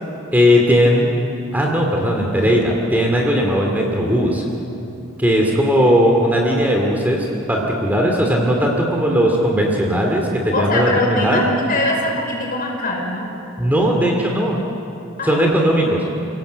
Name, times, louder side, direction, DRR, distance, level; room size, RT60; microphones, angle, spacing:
voice 1, 0.3-1.1 1.5-4.4 5.2-11.4 13.6-14.6 15.2-16.0, equal, 10° right, 0 dB, 2.5 m, -17 dB
voice 2, 10.5-13.3 15.2-15.5 15.8-16.0, left 1 dB, 40° left, 0 dB, 5.3 m, -22 dB
29.5 x 18.5 x 8.0 m, 2.9 s
head